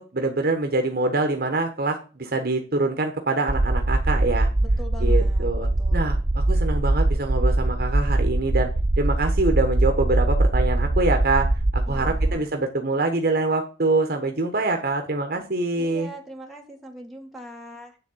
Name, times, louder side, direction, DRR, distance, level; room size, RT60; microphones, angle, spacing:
voice 1, 0.0-4.5 5.0-8.7 9.0-11.5 11.7-16.1, right 2 dB, 55° right, 5 dB, 1.2 m, -25 dB
sound 1, 3.5-12.3, right 2 dB, 40° right, 0.7 m, -22 dB
voice 2, 4.8-6.3 11.9-12.5 15.8-18.0, equal, ahead, 2 dB, 1.8 m, -42 dB
9.5 x 3.8 x 7.2 m, 0.36 s
head